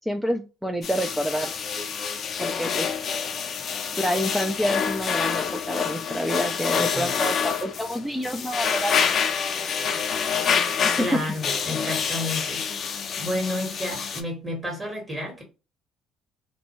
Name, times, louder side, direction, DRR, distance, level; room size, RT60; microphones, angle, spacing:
voice 1, 0.1-1.6 2.4-2.9 4.0-9.1 9.8-10.0 10.6-10.8, equal, 5° right, 0.4 m, -28 dB
sound 1, 0.8-14.2, left 6 dB, 50° left, 0.5 m, -27 dB
voice 2, 11.0-12.6 13.2-15.4, left 1 dB, 25° right, 1.4 m, -31 dB
2.6 x 2.2 x 2.9 m
supercardioid pair, 80°, 0 cm